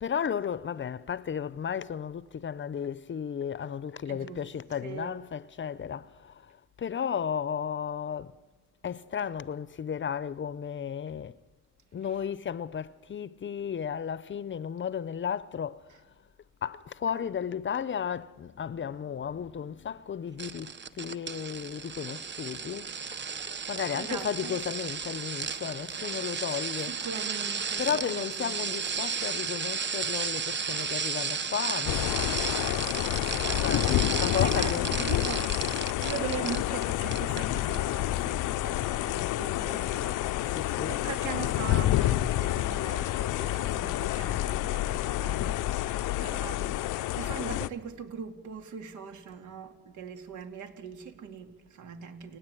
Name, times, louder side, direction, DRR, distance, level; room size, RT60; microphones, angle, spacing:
voice 1, 0.0-8.3 8.8-11.4 11.9-15.8 16.6-22.9 23.7-27.0 27.8-33.0 33.6-35.0 40.5-41.0, left 8 dB, 40° left, 0.7 m, -34 dB
voice 2, 4.1-4.5 4.8-5.1 23.9-24.6 26.7-28.8 33.4-52.4, right 7 dB, 75° right, 2.7 m, -41 dB
sound 1, 20.4-36.8 37.1-37.4 37.7-37.8, right 6 dB, 35° right, 1.2 m, -34 dB
sound 2, 31.9-47.7, left 15 dB, 85° left, 0.7 m, -29 dB
29.5 x 10.5 x 9.2 m
cardioid pair, 90°, 30 cm